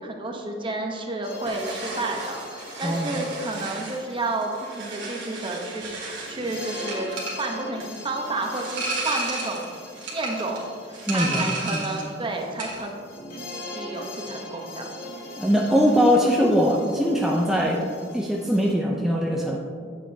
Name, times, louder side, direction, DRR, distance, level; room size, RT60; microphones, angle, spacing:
voice 1, 0.0-9.7 10.1-10.6 11.1-12.9 13.7-14.9, right 2 dB, 30° right, 2 dB, 0.9 m, -31 dB
sound 1, 1.2-18.7, left 2 dB, 55° left, 1.1 m, -42 dB
sound 2, 1.4-12.1 12.4-12.9, right 2 dB, 85° right, 2.0 m, -34 dB
voice 2, 2.8-3.2 11.1-11.4 11.7-11.9 15.4-17.8 18.1-19.6, equal, ahead, -2 dB, 0.5 m, -21 dB
8.9 x 7.6 x 2.7 m, 2.1 s
head